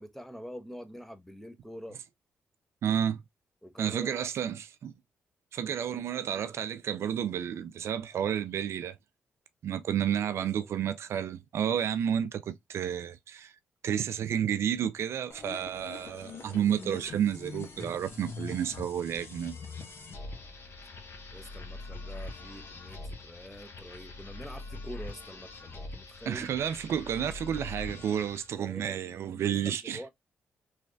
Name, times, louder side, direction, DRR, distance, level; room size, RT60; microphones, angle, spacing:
voice 1, 0.0-2.0 3.6-4.3 5.6-6.0 6.3-6.5 10.3-10.7 21.3-26.5 28.6-30.1, equal, 5° left, 0.8 m, -46 dB
voice 2, 2.8-3.2 3.8-4.9 5.5-9.0 9.6-13.5 13.8-19.5 26.3-30.0, right 9 dB, 70° right, 0.3 m, -31 dB
sound 1, 15.3-28.5, left 3 dB, 60° left, 1.1 m, -43 dB
3.2 x 3.1 x 2.5 m
supercardioid pair, 55°, 5 cm